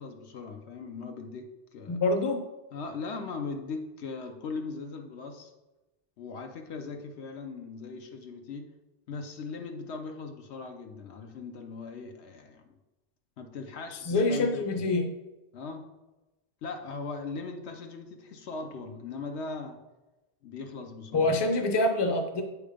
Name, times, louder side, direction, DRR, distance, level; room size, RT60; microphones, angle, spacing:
voice 1, 0.0-2.0 2.7-5.5 6.2-8.7 9.1-12.7 13.4-14.8 15.5-15.9 16.6-19.8 20.4-21.4, left 4 dB, 80° left, 5 dB, 1.0 m, -39 dB
voice 2, 1.9-2.4 14.0-15.1 21.1-22.4, left 2 dB, 30° left, 5 dB, 0.6 m, -26 dB
8.2 x 3.3 x 5.0 m, 1.1 s
omnidirectional pair, 1.1 m